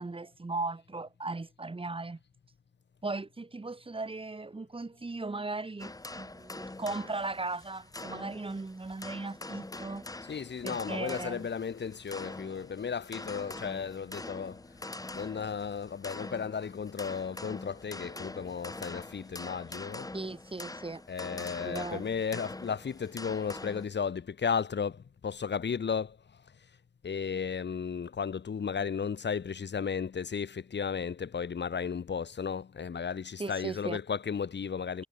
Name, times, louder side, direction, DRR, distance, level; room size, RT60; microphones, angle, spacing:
voice 1, 0.0-2.2 3.0-10.0 10.6-11.5 20.1-21.0 21.4-22.1 33.4-34.0, right 3 dB, 30° right, 6.5 m, -37 dB
sound 1, 5.8-23.9, left 2 dB, 20° left, 2.6 m, -44 dB
voice 2, 10.2-14.6 15.1-20.1 21.1-26.2 27.0-35.0, left 6 dB, 75° left, 3.8 m, -34 dB
wide cardioid pair, 130°, 18 cm